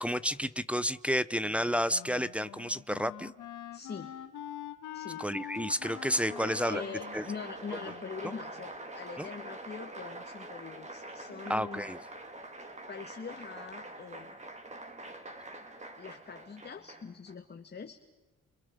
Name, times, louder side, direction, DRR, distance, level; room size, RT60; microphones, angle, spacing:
voice 1, 0.0-3.3 5.2-6.8 7.1-7.2 9.2-9.3 11.5-12.0, equal, 5° right, 13 dB, 0.9 m, -31 dB
Wind instrument woodwind instrument, 1.4-8.6, left 11 dB, 80° left, 2.1 m, -45 dB
voice 2, 3.7-4.1 4.9-5.3 6.4-11.9 12.9-14.3 16.0-18.1, left 5 dB, 35° left, 5 dB, 1.9 m, -43 dB
Applause, 5.4-17.3, right 1 dB, 25° right, 3.7 m, -45 dB
29.5 x 29.5 x 5.3 m, 1.1 s
cardioid pair, 90°, 30 cm